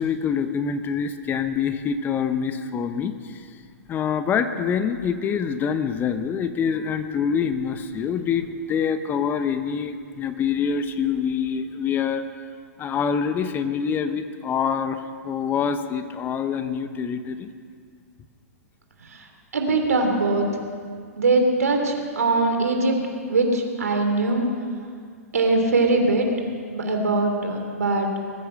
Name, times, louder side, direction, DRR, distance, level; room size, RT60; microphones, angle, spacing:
voice 1, 0.0-3.4 3.9-12.2 12.8-17.5, left 7 dB, 25° left, 10 dB, 0.9 m, -25 dB
voice 2, 19.5-20.5 21.2-23.0 23.3-24.5 25.3-26.3 26.7-28.1, right 3 dB, 80° right, 3 dB, 3.1 m, -21 dB
20.5 x 9.5 x 6.6 m, 2.1 s
hypercardioid pair, 115°, 8 cm